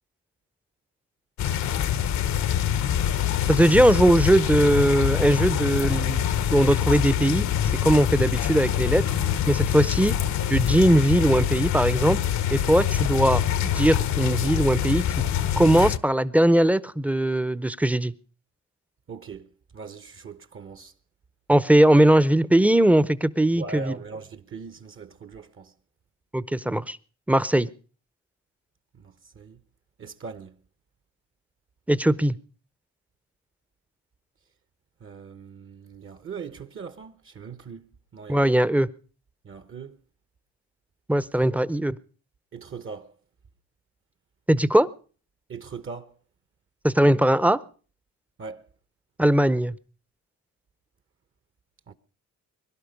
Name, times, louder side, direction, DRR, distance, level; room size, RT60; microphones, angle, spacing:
sound 1, 1.4-16.0, left 10 dB, 70° left, 0.9 m, -25 dB
voice 1, 3.5-6.2 6.5-7.5 7.8-9.0 9.5-10.1 10.5-12.2 12.5-15.2 15.6-18.1 21.5-23.9 26.3-27.0 27.3-27.7 31.9-32.4 38.3-38.9 41.1-42.0 44.5-44.9 46.8-47.6 49.2-49.7, right 1 dB, 5° right, 0.7 m, -20 dB
voice 2, 19.1-20.9 23.5-25.7 28.9-29.6 30.0-30.6 35.0-38.6 39.4-40.0 42.5-43.2 45.5-46.1 48.4-48.7 51.9-52.0, right 5 dB, 45° right, 1.0 m, -40 dB
22.0 x 11.5 x 5.2 m
cardioid pair, 90°, 30 cm